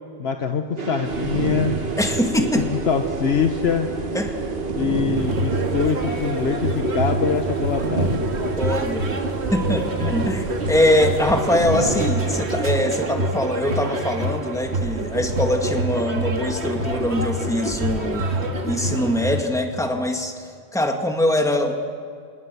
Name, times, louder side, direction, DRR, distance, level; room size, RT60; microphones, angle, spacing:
voice 1, 0.2-1.8 2.5-3.9 4.7-8.3, left 6 dB, 75° left, 6 dB, 1.3 m, -24 dB
sound 1, 0.8-16.9, right 4 dB, 65° right, 1.7 m, -32 dB
sound 2, 1.1-12.1, right 4 dB, 40° right, 1.1 m, -31 dB
voice 2, 2.0-2.7 4.1-4.4 8.6-9.2 9.5-18.3 18.6-20.5 20.7-21.7, left 1 dB, 5° left, 4 dB, 1.9 m, -23 dB
sound 3, 5.2-19.4, right 2 dB, 85° right, 2.2 m, -26 dB
29.0 x 27.0 x 6.9 m, 2.2 s
omnidirectional pair, 1.1 m